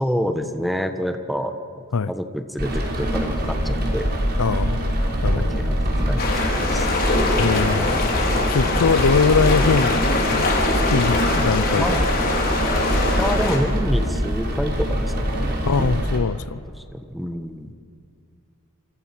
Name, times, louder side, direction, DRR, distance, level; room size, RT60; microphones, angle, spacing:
voice 1, 0.0-1.5 2.1-4.1 5.0-6.2 6.6-6.9 8.7-9.0 11.8-12.1 13.2-16.2 16.9-17.7, equal, ahead, 7 dB, 1.3 m, -28 dB
Rain, 2.6-16.2, equal, 45° right, 4.7 m, -24 dB
voice 2, 4.4-4.9 5.2-5.6 7.4-7.9 8.5-11.9 15.6-16.6, left 5 dB, 85° left, 17 dB, 0.6 m, -22 dB
sound 1, 6.2-13.6, left 2 dB, 45° left, 4.8 m, -23 dB
28.0 x 27.0 x 6.0 m, 2.4 s
head